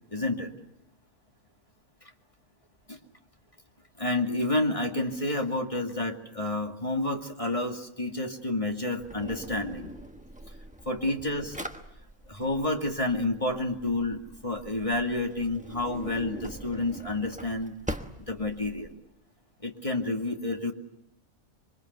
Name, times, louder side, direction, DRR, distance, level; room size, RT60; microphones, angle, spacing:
voice 1, 0.1-0.5 2.9-3.0 4.0-10.0 10.8-11.6 12.3-17.7 18.3-18.9 19.6-20.7, left 2 dB, 25° left, 2 dB, 2.4 m, -29 dB
Drawer open or close, 9.0-18.9, equal, 5° right, 1.2 m, -43 dB
26.5 x 24.5 x 8.2 m, 0.82 s
omnidirectional pair, 1.5 m